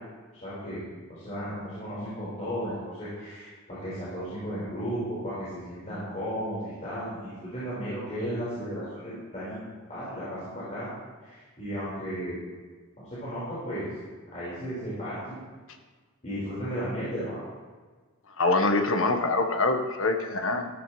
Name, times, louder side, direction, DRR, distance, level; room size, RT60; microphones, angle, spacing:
voice 1, 0.4-0.8 1.1-12.4 13.0-13.9 14.3-15.4 16.2-17.4, equal, 35° left, -11 dB, 4.9 m, -34 dB
voice 2, 18.4-20.7, left 2 dB, 65° left, 5 dB, 1.3 m, -24 dB
15.5 x 13.5 x 3.3 m, 1.4 s
head